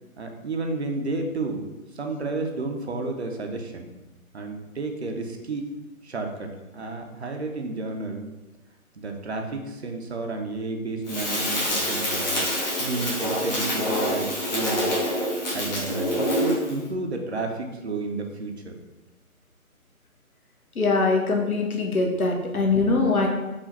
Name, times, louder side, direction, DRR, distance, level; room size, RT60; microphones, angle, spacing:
voice 1, 0.2-1.6 1.9-3.9 4.3-5.7 6.0-8.3 9.0-12.4 12.8-14.9 15.5-18.7, right 3 dB, 50° right, 3 dB, 0.6 m, -31 dB
Crackle, 11.1-16.8, equal, 30° left, 1.3 m, -26 dB
voice 2, 20.7-23.3, left 3 dB, 75° left, 1 dB, 1.1 m, -22 dB
5.0 x 2.5 x 4.0 m, 1.1 s
figure-of-eight pair, 155°, 44 cm